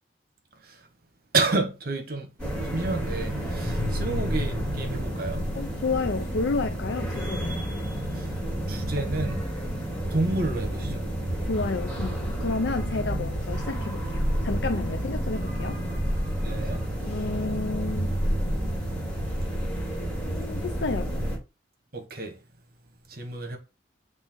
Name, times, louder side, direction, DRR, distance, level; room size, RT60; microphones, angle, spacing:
voice 1, 1.3-2.3 2.7-5.5 8.2-8.3 8.7-9.4 10.1-11.0 16.4-16.8 21.9-22.3 23.1-23.6, right 3 dB, 55° right, 1.3 m, -30 dB
sound 1, 2.4-21.4, equal, 5° left, 3.0 m, -30 dB
sound 2, 3.4-17.7, equal, 10° right, 0.8 m, -42 dB
voice 2, 5.5-7.6 11.4-15.8 17.0-18.2 20.2-21.1, left 3 dB, 80° left, 0.5 m, -31 dB
8.3 x 3.3 x 4.4 m
head